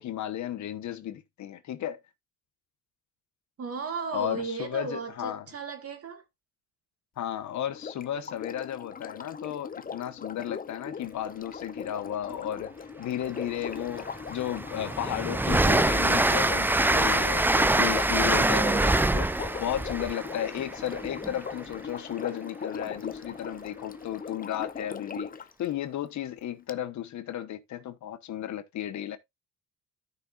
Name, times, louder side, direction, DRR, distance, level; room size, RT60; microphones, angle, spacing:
voice 1, 0.0-2.0 4.1-5.5 7.2-12.7 13.0-29.2, left 11 dB, 70° left, 1.1 m, -34 dB
voice 2, 3.6-6.2, right 4 dB, 50° right, 2.8 m, -35 dB
Sink (filling or washing), 7.7-25.5 26.7-26.8, left 6 dB, 30° left, 0.7 m, -40 dB
Train, 13.4-13.5 13.9-21.6, right 2 dB, 5° right, 0.5 m, -25 dB
13.5 x 5.9 x 2.5 m
cardioid pair, 90°, 30 cm